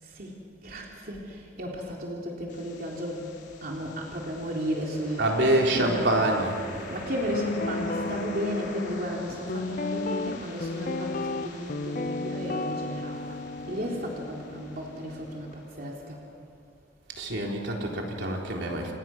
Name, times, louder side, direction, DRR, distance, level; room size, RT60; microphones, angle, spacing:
voice 1, 0.0-3.3 3.6-6.5 6.9-16.2, equal, 50° right, -2 dB, 3.5 m, -34 dB
sound 1, 2.5-16.4, left 3 dB, 70° left, 3.7 m, -45 dB
voice 2, 5.2-6.6 17.1-18.9, right 1 dB, 70° right, 0 dB, 3.9 m, -26 dB
Guitar, 7.3-15.5, left 2 dB, 45° left, 0.5 m, -34 dB
29.5 x 29.0 x 6.1 m, 2.4 s
head